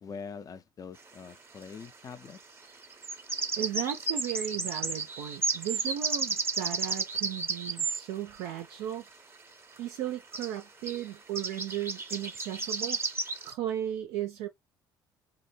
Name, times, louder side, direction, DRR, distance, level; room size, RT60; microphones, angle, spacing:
voice 1, 0.0-2.4, left 5 dB, 30° left, 0.5 m, -44 dB
sound 1, 1.0-1.1 2.8-8.0 9.8-9.9 10.1-10.2 10.3-10.6 10.8-11.1 11.4-13.5, right 3 dB, 20° right, 0.8 m, -32 dB
voice 2, 3.6-9.0 9.8-13.0 13.4-14.5, right 11 dB, 60° right, 0.4 m, -35 dB
3.4 x 2.0 x 3.3 m
figure-of-eight pair, 55°, 12 cm